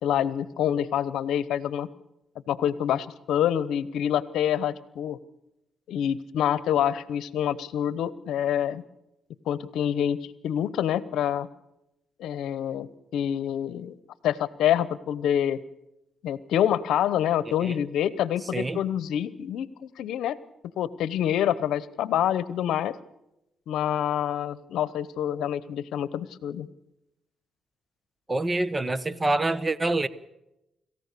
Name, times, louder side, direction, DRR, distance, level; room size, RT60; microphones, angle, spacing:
voice 1, 0.0-1.9 2.5-5.2 5.9-8.8 9.5-10.2 10.4-11.5 12.2-14.0 14.2-15.6 16.2-20.4 20.8-22.9 23.7-26.7, left 10 dB, 85° left, 0.8 m, -26 dB
voice 2, 28.3-30.1, right 2 dB, 25° right, 1.1 m, -26 dB
26.0 x 15.0 x 6.8 m
cardioid pair, 65°, 0 cm